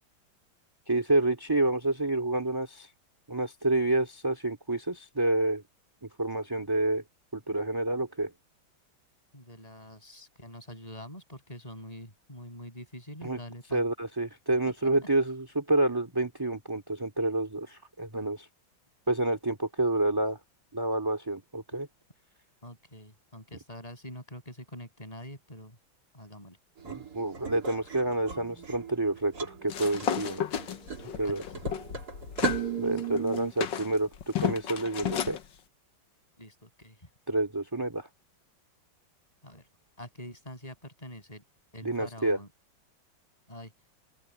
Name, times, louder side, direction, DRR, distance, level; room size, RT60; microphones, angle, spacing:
voice 1, 0.9-2.9 3.3-5.6 6.2-7.0 7.3-8.3 13.2-13.4 13.7-18.5 19.1-20.4 20.7-21.9 26.8-30.4 31.1-31.4 32.8-35.4 37.3-38.1 41.8-42.4, right 2 dB, 10° right, 2.6 m, -28 dB
voice 2, 9.3-13.8 22.6-25.8 26.1-26.6 31.2-31.5 32.4-32.8 36.4-37.1 39.4-39.6 40.0-41.4 41.7-42.5 43.5-43.7, left 1 dB, 15° left, 7.4 m, -45 dB
sound 1, 26.8-33.5, right 5 dB, 50° right, 3.4 m, -36 dB
sound 2, 29.7-32.6 33.0-35.4, left 9 dB, 70° left, 1.8 m, -33 dB
open air
omnidirectional pair, 2.2 m